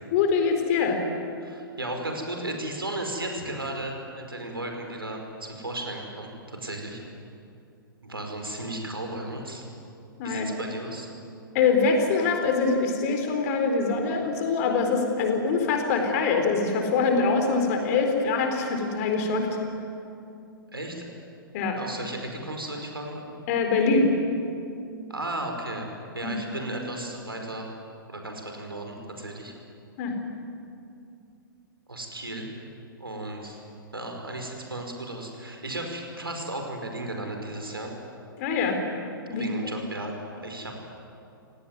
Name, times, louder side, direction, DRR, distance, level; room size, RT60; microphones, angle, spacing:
voice 1, 0.1-1.0 10.2-10.5 11.5-19.6 21.5-21.8 23.5-24.1 26.2-26.3 30.0-30.2 38.4-38.8 39.3-39.7, left 4 dB, 45° left, 5 dB, 4.4 m, -24 dB
voice 2, 1.4-7.0 8.0-9.6 10.2-11.1 20.7-21.0 21.7-23.3 25.1-25.9 26.1-27.7 28.1-29.5 31.9-32.5 33.0-33.6 33.9-37.9 39.3-40.1 40.4-40.7, right 1 dB, 85° right, 3 dB, 5.1 m, -35 dB
27.5 x 18.0 x 9.6 m, 2.6 s
figure-of-eight pair, 110°, 12 cm